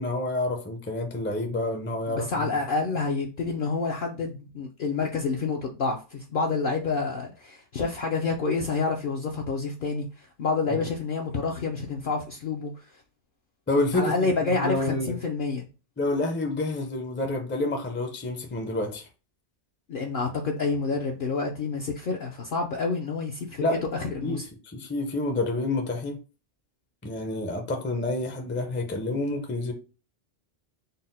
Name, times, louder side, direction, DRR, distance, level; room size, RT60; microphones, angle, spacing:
voice 1, 0.0-2.5 10.7-10.8 13.7-14.1 14.6-15.2 16.0-19.1 23.6-23.8 24.2-24.4 24.6-26.2 27.0-29.7, left 2 dB, 15° left, 0.4 m, -28 dB
voice 2, 2.1-12.8 13.9-15.7 19.9-23.7 24.1-24.5, left 4 dB, 60° left, 0.6 m, -28 dB
4.1 x 2.0 x 3.9 m
omnidirectional pair, 1.2 m